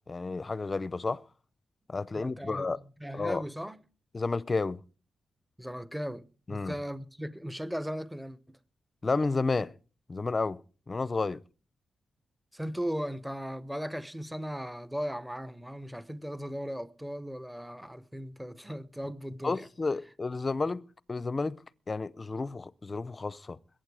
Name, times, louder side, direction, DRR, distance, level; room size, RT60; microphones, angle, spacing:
voice 1, 0.1-1.2 1.9-2.8 3.1-3.4 4.1-4.8 6.5-6.8 9.0-9.7 10.1-10.6 10.9-11.4 19.4-20.8 21.1-21.6 21.9-23.6, left 3 dB, 30° left, 0.6 m, -31 dB
voice 2, 2.1-3.8 5.6-6.2 6.5-8.6 12.5-19.7, equal, 5° right, 0.8 m, -37 dB
22.0 x 9.4 x 4.8 m
wide cardioid pair, 125°, 0 cm